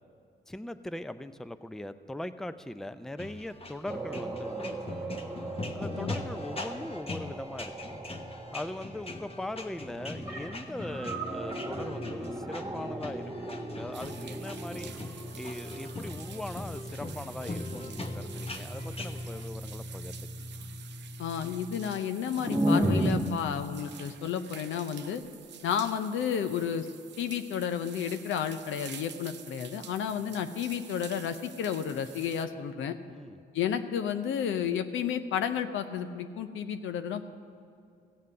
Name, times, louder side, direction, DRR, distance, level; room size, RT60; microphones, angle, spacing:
voice 1, 0.5-5.1 5.7-8.0 8.5-14.9 15.3-20.5 33.1-33.4, left 1 dB, ahead, 12 dB, 0.5 m, -40 dB
sound 1, 3.2-19.5, left 2 dB, 30° left, 1.1 m, -42 dB
sound 2, 3.9-23.1, equal, 15° right, 1.3 m, -36 dB
sound 3, 13.9-32.5, right 9 dB, 65° right, 0.6 m, -49 dB
voice 2, 21.2-25.2 25.6-26.9 27.2-33.0 33.5-37.3, left 8 dB, 85° left, 9 dB, 0.7 m, -32 dB
16.0 x 7.4 x 6.6 m, 2.4 s
cardioid pair, 60°, 20 cm